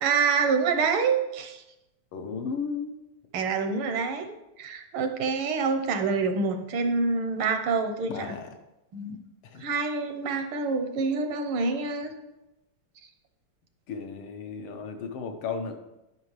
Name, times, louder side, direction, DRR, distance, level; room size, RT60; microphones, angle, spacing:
voice 1, 0.0-1.6 3.3-8.4 8.9-9.2 9.6-12.1, right 4 dB, 80° right, 7 dB, 1.7 m, -27 dB
voice 2, 2.1-3.0 8.1-8.5 9.4-9.6 13.9-15.7, left 5 dB, 85° left, 5 dB, 1.8 m, -34 dB
11.0 x 5.8 x 3.2 m, 0.93 s
omnidirectional pair, 2.3 m